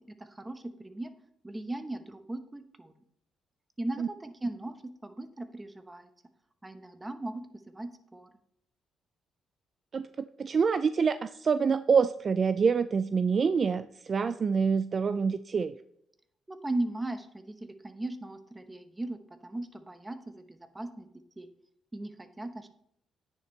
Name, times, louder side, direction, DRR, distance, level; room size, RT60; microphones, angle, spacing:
voice 1, 0.1-1.1 1.4-2.9 3.8-6.1 6.6-8.3 16.5-21.1 21.4-21.5 21.9-22.7, right 2 dB, 15° right, 8 dB, 1.0 m, -38 dB
voice 2, 10.4-15.7, right 5 dB, 45° right, 12 dB, 0.3 m, -26 dB
9.8 x 9.7 x 3.2 m, 0.75 s
cardioid pair, 90°, 0 cm